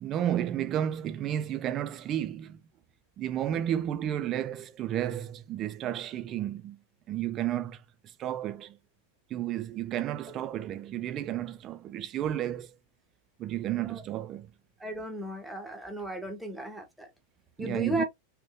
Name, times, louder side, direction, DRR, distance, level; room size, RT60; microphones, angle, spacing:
voice 1, 0.0-2.6 3.2-6.8 7.1-7.8 8.2-8.8 9.3-12.7 13.4-14.5 17.6-18.0, right 11 dB, 30° right, 0.3 m, -32 dB
voice 2, 14.8-17.1 17.6-18.0, right 1 dB, ahead, 0.7 m, -35 dB
2.6 x 2.1 x 2.3 m
figure-of-eight pair, 90°, 0 cm